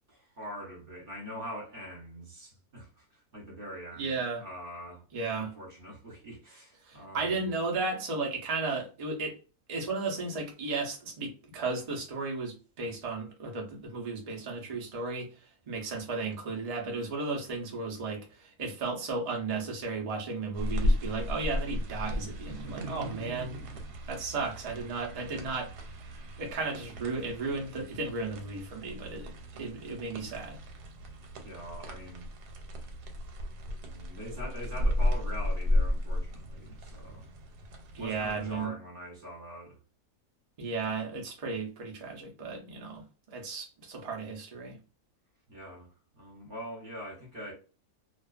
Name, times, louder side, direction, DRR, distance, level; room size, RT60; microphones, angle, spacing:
voice 1, 0.1-3.0 3.3-7.4 22.5-24.0 31.4-32.3 33.9-37.3 38.0-39.8 45.5-47.5, equal, 40° right, 0.9 m, -43 dB
voice 2, 3.9-4.5 5.1-5.5 6.8-9.4 9.7-23.6 24.1-25.7 26.4-30.6 37.9-38.7 40.6-44.8, right 3 dB, 65° right, 0.3 m, -34 dB
sound 1, 20.5-38.7, left 1 dB, 90° right, 1.2 m, -34 dB
2.4 x 2.3 x 2.3 m
omnidirectional pair, 1.7 m